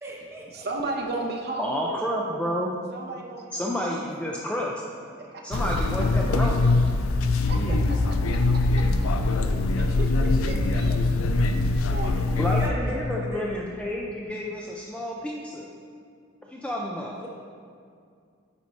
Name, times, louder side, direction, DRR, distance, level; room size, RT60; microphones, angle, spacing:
voice 1, 0.0-0.7 11.9-12.1 12.4-13.6 17.2-17.3, equal, 10° right, -3 dB, 0.9 m, -37 dB
voice 2, 0.5-2.0 2.9-3.8 5.3-5.4 7.4-7.6 9.8-11.0 11.8-12.6, right 2 dB, 50° right, 1 dB, 0.7 m, -34 dB
voice 3, 1.6-2.8 3.5-4.7 5.4-6.7 7.5-8.0 12.4-15.7 16.5-17.2, equal, 5° left, -2 dB, 0.4 m, -30 dB
sound 1, 5.5-12.7, left 2 dB, 85° left, 0.5 m, -23 dB
9.3 x 4.6 x 4.1 m, 2.3 s
head